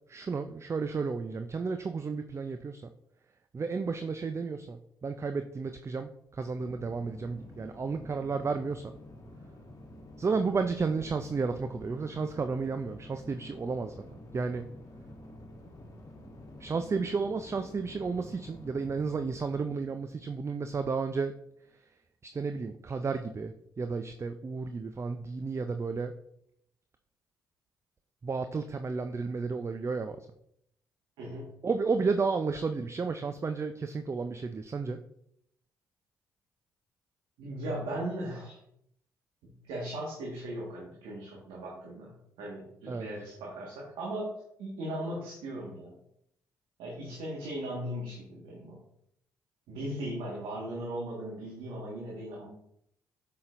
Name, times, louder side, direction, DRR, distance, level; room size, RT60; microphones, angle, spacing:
voice 1, 0.1-2.9 3.5-8.9 10.2-13.9 14.3-14.6 16.6-21.3 22.2-26.1 28.2-30.3 31.6-35.0 42.9-43.1, right 4 dB, 30° right, 8 dB, 0.5 m, -32 dB
sound 1, 6.6-21.0, left 1 dB, 40° left, 1.5 m, -50 dB
voice 2, 31.2-31.5 37.4-38.6 39.4-44.3 44.6-45.9 46.8-48.8 49.7-52.5, right 1 dB, 75° right, -4 dB, 1.6 m, -38 dB
7.8 x 5.7 x 2.6 m, 0.74 s
hypercardioid pair, 45°, 9 cm